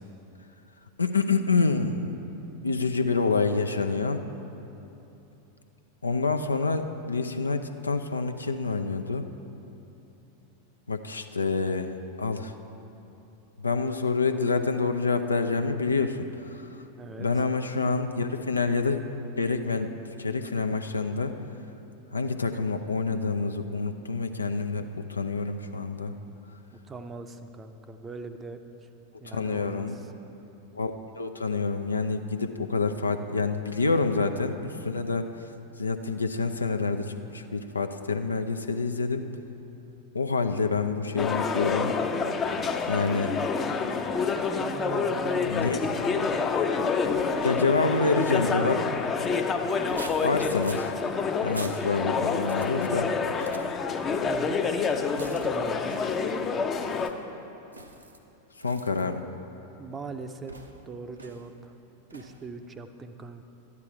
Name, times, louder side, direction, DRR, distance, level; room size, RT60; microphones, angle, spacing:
voice 1, 1.0-2.1 2.6-4.2 6.0-9.2 10.9-11.9 12.2-12.5 13.6-16.8 17.2-19.0 19.4-19.9 20.2-21.3 22.1-26.1 29.3-30.0 30.7-35.3 35.8-39.2 40.1-42.0 42.9-43.3 45.5-45.8 47.4-48.9 50.2-50.9 51.4-53.1 58.6-59.2, left 4 dB, 80° left, 7 dB, 0.5 m, -27 dB
voice 2, 17.0-17.3 26.7-28.9 29.2-30.1 44.5-46.0 54.2-56.0 59.8-61.7 62.1-63.4, right 4 dB, 20° right, 8 dB, 0.6 m, -41 dB
sound 1, 41.2-57.1, left 5 dB, 25° left, 0.6 m, -28 dB
sound 2, 44.7-49.2 49.8-50.9 51.4-51.8 52.4-52.9 53.3-53.8 55.2-55.5 55.8-56.3 56.8-57.1 57.7-58.2 58.6-59.0 60.5-60.8 61.2-61.5 62.1-62.4, right 2 dB, 80° right, 0.8 m, -46 dB
12.5 x 9.7 x 4.7 m, 2.9 s
figure-of-eight pair, 90°, 0 cm